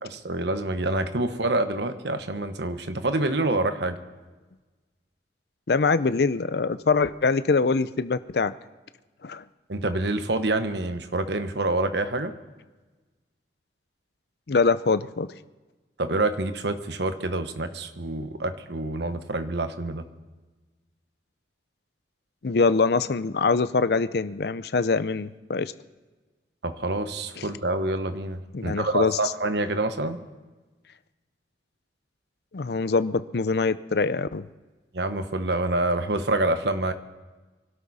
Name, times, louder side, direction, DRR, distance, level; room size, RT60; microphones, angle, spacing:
voice 1, 0.0-4.0 9.7-12.3 16.0-20.0 26.6-30.2 34.9-36.9, right 2 dB, 70° right, 9 dB, 1.1 m, -27 dB
voice 2, 5.7-8.5 9.2-9.4 14.5-15.3 22.4-25.7 27.4-27.5 28.5-29.2 32.5-34.5, left 4 dB, 60° left, 14 dB, 0.5 m, -24 dB
24.5 x 12.5 x 4.1 m, 1.2 s
head